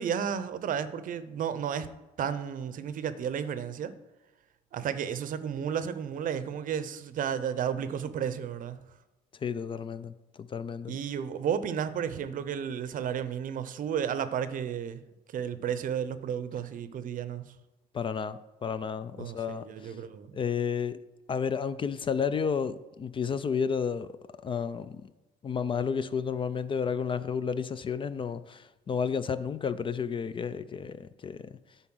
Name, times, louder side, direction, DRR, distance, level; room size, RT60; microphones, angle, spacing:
voice 1, 0.0-1.9 2.2-3.9 4.7-8.8 10.9-15.0 15.3-17.5 19.2-20.4, right 8 dB, 55° right, 0.7 m, -32 dB
voice 2, 9.4-10.9 17.9-20.0 20.3-21.0 21.3-24.1 24.4-25.1 25.4-31.5, left 6 dB, 30° left, 0.4 m, -32 dB
9.7 x 4.1 x 6.1 m
cardioid pair, 110°, 17 cm